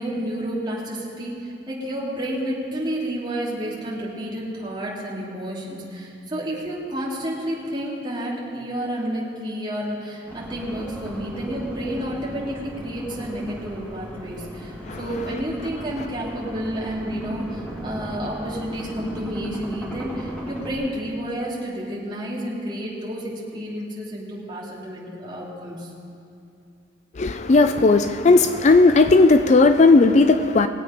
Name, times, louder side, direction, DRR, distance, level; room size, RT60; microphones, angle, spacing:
voice 1, 0.0-25.9, right 1 dB, 25° right, 2.7 m, -30 dB
sound 1, 10.3-20.7, equal, 5° left, 2.2 m, -36 dB
voice 2, 27.2-30.7, left 3 dB, 40° left, 0.4 m, -15 dB
20.5 x 8.5 x 5.1 m
head